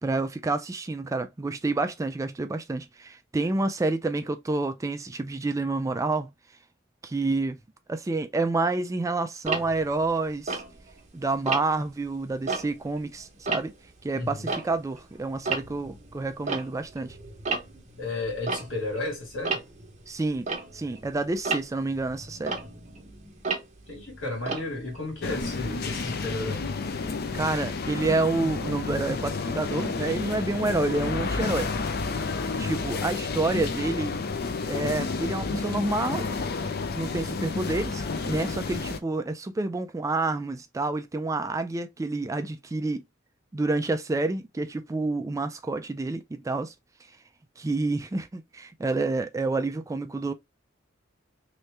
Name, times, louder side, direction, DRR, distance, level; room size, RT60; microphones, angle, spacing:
voice 1, 0.0-6.3 7.0-7.6 7.9-10.6 11.1-13.7 14.0-17.2 20.1-20.5 20.7-22.6 27.3-31.7 32.6-34.1 34.7-36.3 37.0-43.0 43.5-46.7 47.6-50.3, right 3 dB, 15° right, 0.3 m, -28 dB
Tick-tock, 9.4-11.1 11.5-11.9 12.3-15.1 15.3-25.4, right 4 dB, 35° right, 1.0 m, -34 dB
voice 2, 14.1-14.5 18.0-19.6 23.9-26.7, left 2 dB, 75° left, 2.4 m, -33 dB
sound 1, 25.2-39.0, left 4 dB, 50° left, 0.5 m, -30 dB
3.2 x 3.1 x 3.2 m
head